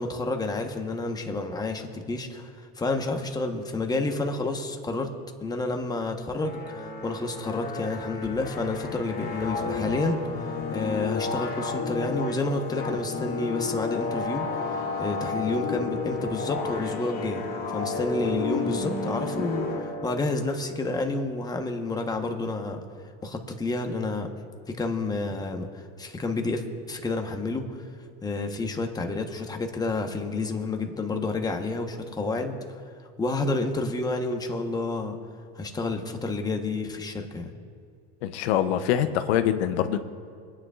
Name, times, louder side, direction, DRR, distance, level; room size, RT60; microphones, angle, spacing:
voice 1, 0.0-5.1 5.4-22.8 23.2-24.3 24.7-27.8 28.2-32.8 33.2-35.2 35.6-37.5, left 2 dB, 10° left, 4 dB, 1.0 m, -30 dB
sound 1, 6.4-20.5, left 4 dB, 30° left, 1.9 m, -32 dB
sound 2, 8.2-10.9, equal, 55° right, 3.3 m, -48 dB
voice 2, 38.2-40.0, left 10 dB, 85° left, 10 dB, 0.7 m, -24 dB
26.0 x 9.9 x 2.4 m, 2.2 s
supercardioid pair, 125°, 32 cm